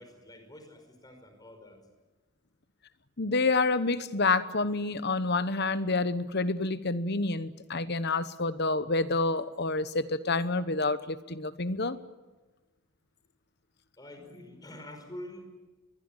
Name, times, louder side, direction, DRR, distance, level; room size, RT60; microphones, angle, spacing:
voice 1, 0.0-1.8 14.0-15.5, left 1 dB, 20° left, 5 dB, 5.3 m, -46 dB
voice 2, 3.2-12.0, left 3 dB, 50° left, 13 dB, 1.2 m, -28 dB
23.0 x 22.5 x 9.0 m, 1.2 s
head